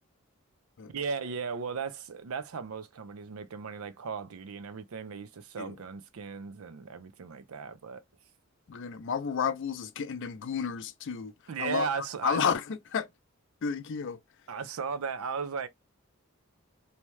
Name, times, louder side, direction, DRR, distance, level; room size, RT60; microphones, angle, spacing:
voice 1, 0.9-8.0 11.5-12.4 14.5-15.7, right 5 dB, 90° right, 0.5 m, -36 dB
voice 2, 8.7-11.3 11.6-11.9 12.2-13.1 13.6-14.2, left 6 dB, 60° left, 0.4 m, -31 dB
2.8 x 2.2 x 3.1 m
head